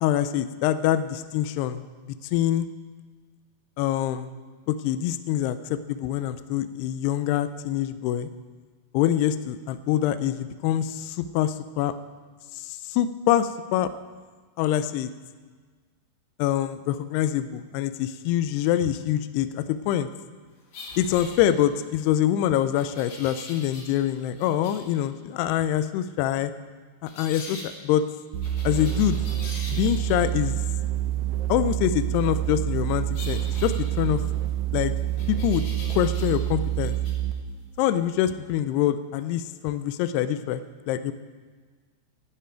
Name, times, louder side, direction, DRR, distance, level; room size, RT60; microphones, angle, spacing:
voice 1, 0.0-1.8 2.3-2.7 3.8-4.3 4.7-8.3 8.9-11.9 12.6-13.9 14.6-15.1 16.4-20.1 21.0-26.5 27.0-28.0 28.6-29.2 29.7-30.6 31.5-34.2 34.7-34.9 35.3-35.6 35.9-37.0 37.8-40.6 40.9-41.1, left 11 dB, 90° left, 12 dB, 2.3 m, -25 dB
sound 1, 20.7-21.9 22.8-24.1 24.4-24.9 27.1-27.7 28.4-30.3 33.1-34.4 35.2-36.5 36.8-37.1, left 2 dB, 60° left, 4.6 m, -42 dB
sound 2, 28.3-37.5, right 12 dB, 90° right, 1.9 m, -27 dB
16.5 x 10.0 x 4.5 m, 1.4 s
omnidirectional pair, 5.3 m